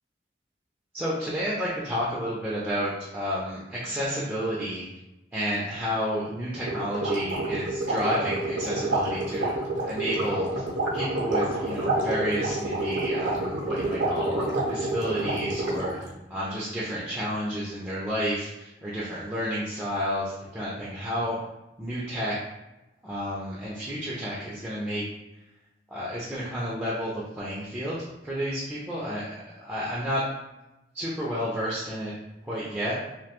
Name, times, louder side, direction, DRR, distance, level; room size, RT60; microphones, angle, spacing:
voice 1, 0.9-4.9 5.3-9.5 9.8-10.5 10.9-16.0 16.3-21.4 21.8-22.4 23.0-25.0 25.9-30.2 30.9-32.1 32.4-33.0, equal, 10° right, -8 dB, 0.3 m, -31 dB
sound 1, 6.6-16.1, right 2 dB, 75° right, 0.7 m, -28 dB
2.3 x 2.2 x 2.8 m, 0.96 s
head